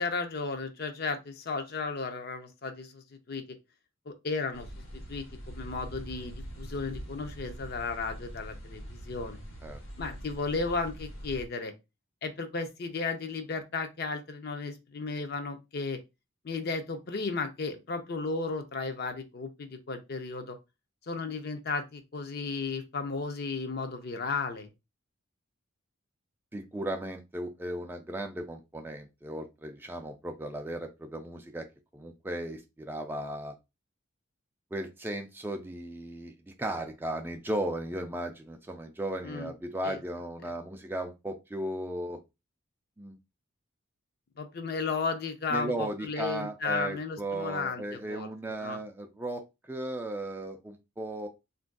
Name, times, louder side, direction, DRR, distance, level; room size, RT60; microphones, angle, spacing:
voice 1, 0.0-3.6 4.1-4.7 4.9-9.4 10.0-11.7 12.2-16.0 16.4-20.6 21.1-24.7 39.2-39.5 39.8-40.0 40.4-40.5 44.4-48.3 48.6-48.8, left 4 dB, 50° left, 0.5 m, -34 dB
sound 1, 4.5-11.5, equal, 70° left, 1.2 m, -43 dB
voice 2, 26.5-31.7 31.9-33.5 34.7-42.2 43.0-43.2 45.5-51.3, right 1 dB, 10° right, 0.3 m, -36 dB
3.7 x 2.5 x 2.2 m
head